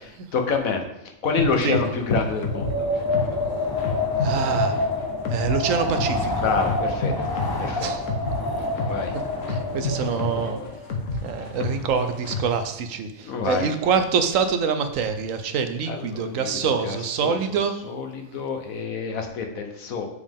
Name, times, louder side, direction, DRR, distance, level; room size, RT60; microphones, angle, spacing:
voice 1, 0.3-2.9 6.4-7.3 7.6-7.9 8.9-9.2 13.2-13.7 15.9-17.6 17.8-20.1, left 4 dB, 90° left, 4 dB, 1.4 m, -27 dB
sound 1, 1.4-12.7, left 2 dB, 70° left, 1.4 m, -31 dB
Wind, 2.3-10.8, left 2 dB, 30° left, 0.4 m, -27 dB
voice 2, 4.2-4.8 5.3-6.5 7.8-8.0 9.5-10.6 11.2-17.7, right 6 dB, 75° right, 9 dB, 1.1 m, -25 dB
7.3 x 6.6 x 3.6 m, 0.83 s
omnidirectional pair, 1.4 m